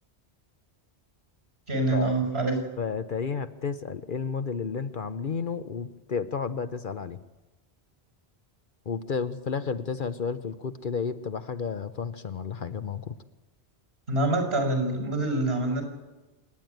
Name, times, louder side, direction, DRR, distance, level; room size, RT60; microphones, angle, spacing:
voice 1, 1.7-2.5 14.1-15.8, right 2 dB, 65° right, 4 dB, 5.6 m, -25 dB
voice 2, 2.8-7.2 8.9-13.1, left 5 dB, 55° left, 10 dB, 0.9 m, -32 dB
26.5 x 10.5 x 9.3 m, 1.1 s
omnidirectional pair, 1.1 m